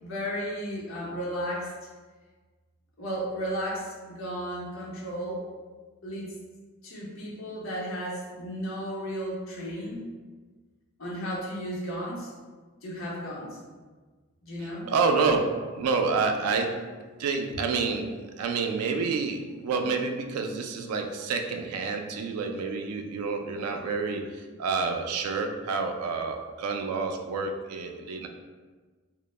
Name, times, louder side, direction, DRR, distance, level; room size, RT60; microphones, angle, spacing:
voice 1, 0.0-1.7 3.0-5.4 6.0-6.3 6.8-10.0 11.0-12.3 12.8-13.6 14.4-14.9, equal, 65° left, -5 dB, 0.6 m, -34 dB
voice 2, 14.6-16.8 17.2-28.3, right 4 dB, 85° right, 10 dB, 0.3 m, -28 dB
2.0 x 2.0 x 3.1 m, 1.4 s
head